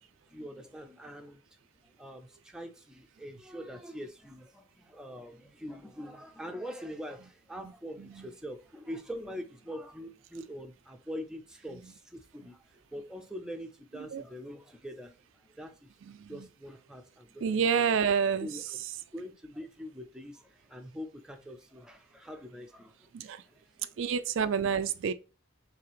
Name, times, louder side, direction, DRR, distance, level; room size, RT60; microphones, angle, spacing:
voice 1, 0.3-1.4 2.0-12.6 12.9-15.1 15.6-15.9 16.3-17.5 17.9-18.0 18.4-18.6 19.1-23.1 23.4-23.9, equal, 5° right, 0.6 m, -43 dB
voice 2, 16.0-16.5 17.4-18.6 23.1-23.4 24.0-25.1, right 6 dB, 60° right, 0.4 m, -29 dB
4.8 x 3.4 x 3.1 m
head